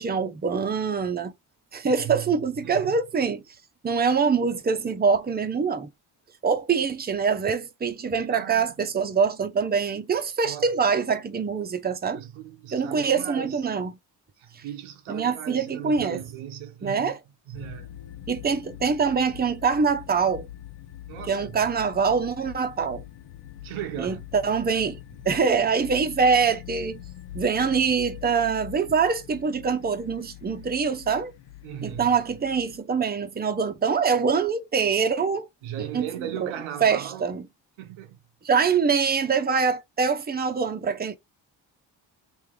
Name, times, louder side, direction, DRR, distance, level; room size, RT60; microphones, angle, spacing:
voice 1, 0.0-1.3 1.7-3.4 3.8-5.9 6.4-12.2 12.7-13.9 15.1-16.2 16.8-17.2 18.3-20.5 21.3-23.0 24.0-25.0 25.2-27.0 27.3-31.3 31.8-35.5 35.8-36.1 36.4-36.5 36.8-37.5 38.4-41.2, right 5 dB, 20° right, 0.6 m, -24 dB
voice 2, 2.0-2.3 2.6-2.9 8.3-8.7 10.4-10.7 12.1-13.6 14.4-17.1 17.5-17.9 21.1-21.5 23.6-24.2 31.6-32.2 35.6-37.4 37.8-38.2, right 10 dB, 90° right, 0.7 m, -37 dB
sound 1, 17.5-32.8, left 13 dB, 75° left, 0.6 m, -43 dB
3.3 x 2.6 x 3.7 m
cardioid pair, 75°, 46 cm